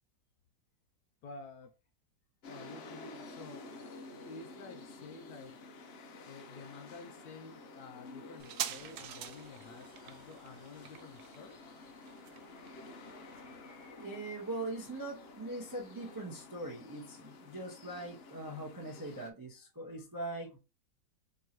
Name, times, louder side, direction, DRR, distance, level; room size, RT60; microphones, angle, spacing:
voice 1, 1.2-1.7 2.5-3.8 4.2-5.6 6.2-11.6, left 4 dB, 70° left, 1.0 m, -51 dB
sound 1, 2.4-19.3, left 3 dB, 90° left, 0.5 m, -51 dB
sound 2, 8.4-15.5 15.8-15.9, right 10 dB, 90° right, 1.3 m, -46 dB
voice 2, 12.5-20.6, right 2 dB, 25° right, 0.4 m, -42 dB
4.5 x 2.9 x 2.9 m
omnidirectional pair, 2.0 m